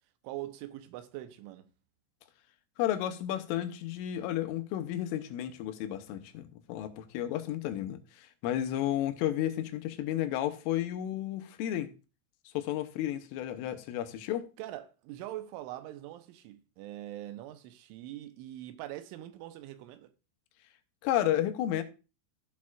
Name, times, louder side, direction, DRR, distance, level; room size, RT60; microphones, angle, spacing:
voice 1, 0.2-1.7 14.6-20.1, right 14 dB, 90° right, 3.2 m, -43 dB
voice 2, 2.8-11.9 12.6-14.5 21.0-21.8, left 12 dB, 85° left, 3.4 m, -32 dB
15.0 x 6.3 x 2.4 m
omnidirectional pair, 5.6 m